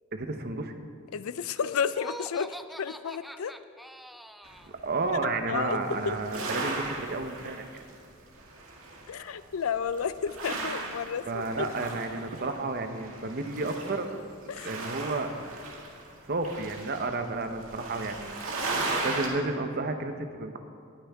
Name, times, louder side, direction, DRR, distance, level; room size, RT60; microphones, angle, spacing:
voice 1, 0.1-0.7 4.8-7.6 11.3-14.1 14.6-15.3 16.3-18.4 19.0-20.6, right 3 dB, 50° right, 7 dB, 0.9 m, -31 dB
voice 2, 1.1-3.5 5.5-6.2 9.1-11.4 14.5-14.7, left 6 dB, 85° left, 15 dB, 0.5 m, -32 dB
Laughter, 1.9-4.7, equal, ahead, 0.3 m, -44 dB
sound 1, 4.4-5.2 5.6-8.0 8.3-9.4 9.7-19.3, right 3 dB, 75° right, 2.1 m, -37 dB
20.0 x 9.2 x 3.6 m, 2.5 s
head